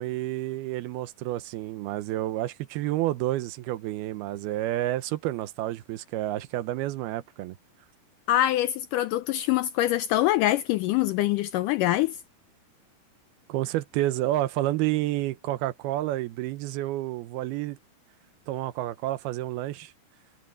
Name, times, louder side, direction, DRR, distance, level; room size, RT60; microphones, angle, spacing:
voice 1, 0.0-7.6 13.5-17.8 18.5-19.9, right 15 dB, 90° right, 2.8 m, -29 dB
voice 2, 8.3-12.2, left 14 dB, 85° left, 1.9 m, -24 dB
omnidirectional pair, 4.3 m